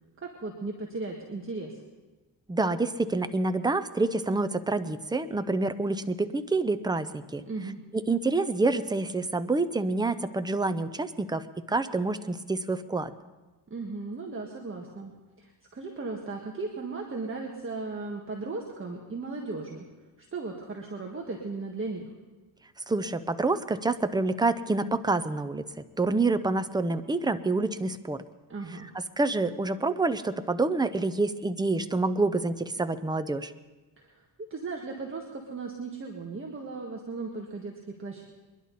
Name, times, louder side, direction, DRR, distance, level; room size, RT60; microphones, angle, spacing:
voice 1, 0.2-1.7 7.4-7.8 13.7-15.1 15.4-19.9 20.2-22.1 28.5-28.9 34.0-34.2 34.5-38.2, right 3 dB, 30° right, 0 dB, 1.7 m, -36 dB
voice 2, 2.5-7.4 8.1-13.1 22.9-25.6 26.0-28.2 29.2-33.5, right 3 dB, 10° right, 11 dB, 0.6 m, -27 dB
23.0 x 11.0 x 4.2 m, 1.2 s
cardioid pair, 100°, 43 cm